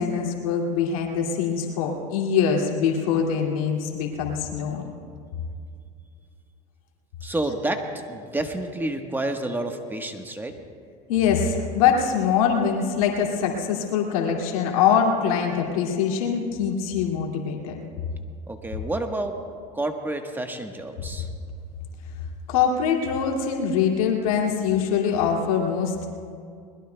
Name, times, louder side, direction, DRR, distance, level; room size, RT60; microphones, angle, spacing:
voice 1, 0.0-4.9 11.1-17.8 22.5-26.1, left 7 dB, 85° left, 0 dB, 2.4 m, -23 dB
voice 2, 7.2-10.6 18.5-19.3 19.7-21.3, right 1 dB, 10° right, 4 dB, 1.3 m, -29 dB
22.0 x 21.0 x 2.3 m, 2.3 s
supercardioid pair, 95°, 18 cm